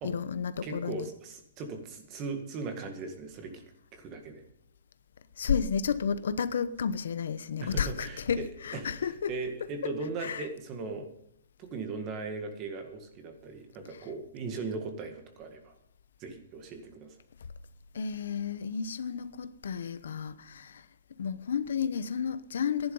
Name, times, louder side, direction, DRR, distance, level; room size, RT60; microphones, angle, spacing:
voice 1, 0.0-1.1 5.4-9.3 10.2-10.5 17.9-20.9 21.2-22.9, left 7 dB, 90° left, 0.9 m, -32 dB
voice 2, 0.6-3.6 3.9-4.4 7.6-11.1 11.6-15.8 16.2-17.2, right 3 dB, 25° right, 1.9 m, -38 dB
14.5 x 11.0 x 5.5 m
hypercardioid pair, 175°, 0 cm